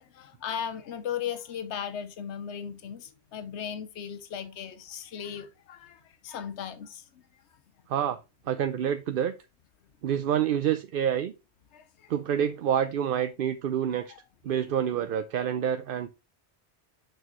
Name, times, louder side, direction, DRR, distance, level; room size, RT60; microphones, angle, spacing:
voice 1, 0.0-7.1 11.7-12.1 13.2-13.3 14.1-14.2, left 8 dB, 85° left, 1.0 m, -37 dB
voice 2, 8.5-9.3 10.0-11.3 12.1-14.1 14.4-16.1, right 9 dB, 60° right, 0.7 m, -27 dB
6.6 x 6.4 x 3.0 m
omnidirectional pair, 1.1 m